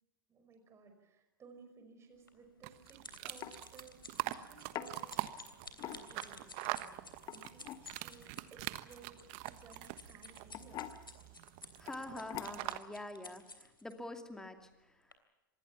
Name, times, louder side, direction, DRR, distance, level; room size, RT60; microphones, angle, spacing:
voice 1, 0.3-5.5 5.8-11.0, right 5 dB, 25° right, 6 dB, 5.2 m, -59 dB
sound 1, 2.3-13.9 14.6-14.8 15.1-15.2, left 3 dB, 85° left, 3.1 m, -53 dB
sound 2, 2.6-12.8, right 18 dB, 45° right, 1.3 m, -44 dB
sound 3, 2.7-2.9 3.4-3.6 4.8-4.9 5.7-6.3 7.1-7.9 9.5-9.8 10.5-11.0 11.9-12.0 12.3-12.8, left 11 dB, 35° left, 1.6 m, -44 dB
voice 2, 11.8-15.1, left 1 dB, 5° left, 6 dB, 2.6 m, -46 dB
26.5 x 20.5 x 7.2 m, 1.1 s
figure-of-eight pair, 100°, 11 cm